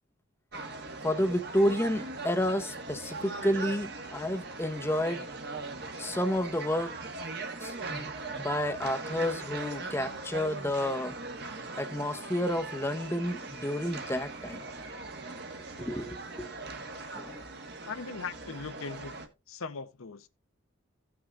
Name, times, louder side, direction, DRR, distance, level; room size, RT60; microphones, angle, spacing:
sound 1, 0.5-19.3, right 3 dB, 50° right, 1.3 m, -40 dB
voice 1, 1.0-5.3 6.0-6.9 7.6-8.1 8.4-11.2 11.8-14.6 15.8-16.5 17.1-17.4, left 1 dB, 10° left, 0.7 m, -30 dB
voice 2, 17.9-20.3, left 4 dB, 80° left, 0.7 m, -40 dB
16.5 x 5.9 x 2.4 m
head